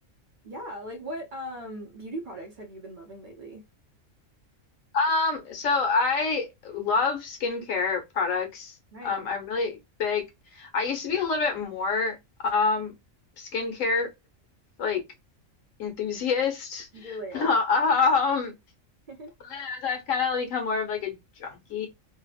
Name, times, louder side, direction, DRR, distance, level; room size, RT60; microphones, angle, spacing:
voice 1, 0.4-3.6 8.9-9.3 16.9-17.6 19.1-19.3, equal, 50° right, 0.6 m, -39 dB
voice 2, 4.9-8.7 9.0-10.2 10.5-12.2 12.4-12.9 13.4-14.1 14.8-15.0 15.8-16.9 17.3-18.5 19.4-21.9, left 4 dB, 90° left, 1.2 m, -26 dB
2.8 x 2.0 x 2.3 m
omnidirectional pair, 1.3 m